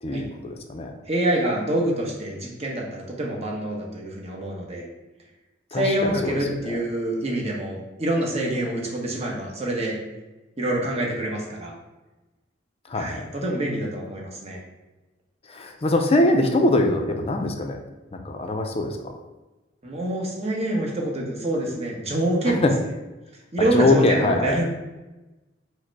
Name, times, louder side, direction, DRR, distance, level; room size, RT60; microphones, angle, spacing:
voice 1, 0.0-0.9 5.7-6.8 12.9-13.2 15.5-17.8 18.1-19.1 22.5-22.7 23.7-24.6, left 2 dB, 30° left, 4 dB, 0.5 m, -23 dB
voice 2, 1.1-4.9 5.7-10.0 10.6-11.7 12.9-14.6 19.8-22.7 23.5-24.6, right 1 dB, 35° right, -2 dB, 0.9 m, -26 dB
4.8 x 2.1 x 4.5 m, 1.1 s
head